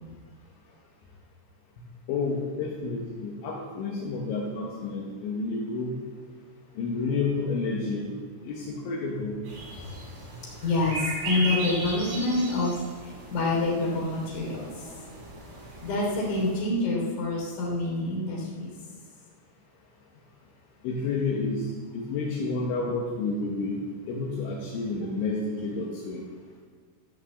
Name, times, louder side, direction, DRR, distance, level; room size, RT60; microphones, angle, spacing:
voice 1, 2.1-6.0 6.8-8.1 8.4-9.4 20.8-21.7 21.9-23.8 24.1-26.2, left 3 dB, 75° left, -3 dB, 3.7 m, -30 dB
sound 1, 9.5-16.6, right 2 dB, 80° right, 6.3 m, -37 dB
voice 2, 10.6-12.7 13.0-14.9 15.8-18.7, left 2 dB, 45° left, -3 dB, 4.2 m, -27 dB
15.0 x 6.1 x 7.3 m, 1.5 s
omnidirectional pair, 5.7 m